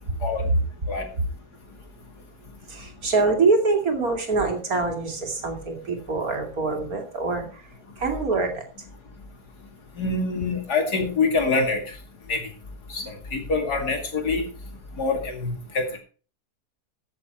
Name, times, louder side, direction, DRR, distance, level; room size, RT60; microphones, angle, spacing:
voice 1, 2.7-7.6 8.0-8.6, right 3 dB, 65° right, 3 dB, 3.0 m, -24 dB
voice 2, 10.0-11.8 12.3-12.4 12.9-13.0 13.3-14.5 15.0-15.9, left 3 dB, 85° left, 3 dB, 3.0 m, -25 dB
15.0 x 7.3 x 4.5 m, 0.38 s
omnidirectional pair, 1.7 m